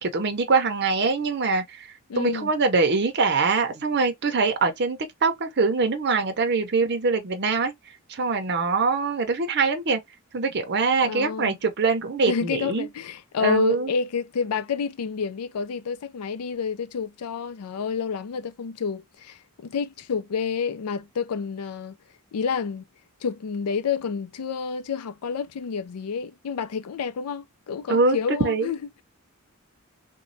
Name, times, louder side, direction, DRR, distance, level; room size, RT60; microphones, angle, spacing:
voice 1, 0.0-7.7 8.1-10.0 10.3-12.9 13.4-13.9 27.9-28.7, right 4 dB, 50° right, 0.6 m, -23 dB
voice 2, 2.1-2.5 11.0-11.6 12.3-22.0 22.3-22.8 23.2-29.0, left 6 dB, 90° left, 0.4 m, -29 dB
3.0 x 2.2 x 2.6 m
head